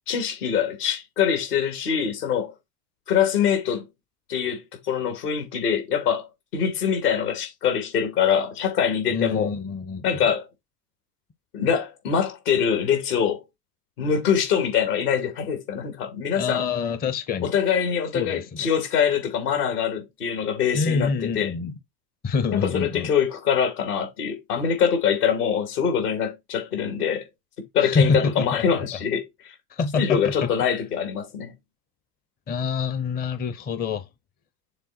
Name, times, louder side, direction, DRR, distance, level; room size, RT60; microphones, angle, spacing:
voice 1, 0.1-2.5 3.1-3.8 4.3-4.6 4.9-9.5 10.0-10.5 11.5-13.4 14.0-16.6 17.4-21.5 22.5-27.3 27.7-29.5 30.0-31.5, left 7 dB, 65° left, 2.7 m, -24 dB
voice 2, 9.1-10.2 16.3-17.5 18.1-18.7 20.7-21.7 22.2-23.1 27.8-28.8 29.7-30.3 32.5-34.1, left 4 dB, 20° left, 0.7 m, -26 dB
6.9 x 3.6 x 4.3 m
hypercardioid pair, 85°, 49 cm